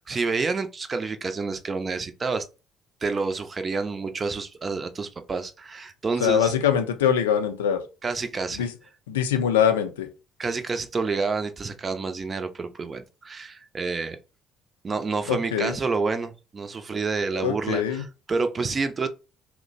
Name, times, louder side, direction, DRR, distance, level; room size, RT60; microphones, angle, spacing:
voice 1, 0.0-2.4 3.0-6.5 8.0-8.7 10.4-14.2 14.8-19.1, right 4 dB, 35° right, 0.5 m, -28 dB
voice 2, 6.2-7.8 8.5-8.7 9.1-10.1 15.3-15.8 17.3-18.0, left 8 dB, 85° left, 0.4 m, -23 dB
2.8 x 2.1 x 3.9 m
hypercardioid pair, 55°, 0 cm